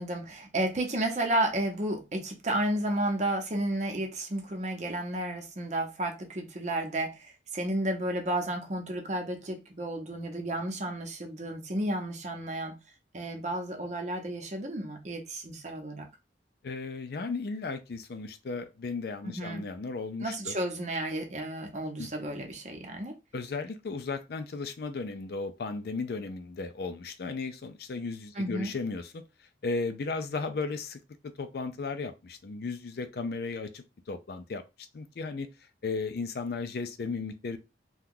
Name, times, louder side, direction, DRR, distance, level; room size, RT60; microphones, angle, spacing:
voice 1, 0.0-12.8 13.1-16.1 19.2-19.6 20.2-23.2 28.3-28.7, right 1 dB, 40° right, 0.7 m, -32 dB
voice 2, 16.6-20.5 22.0-22.1 23.3-29.2 29.6-34.6 34.9-35.5 35.8-37.6, left 4 dB, 60° left, 0.4 m, -35 dB
2.8 x 2.2 x 3.7 m
head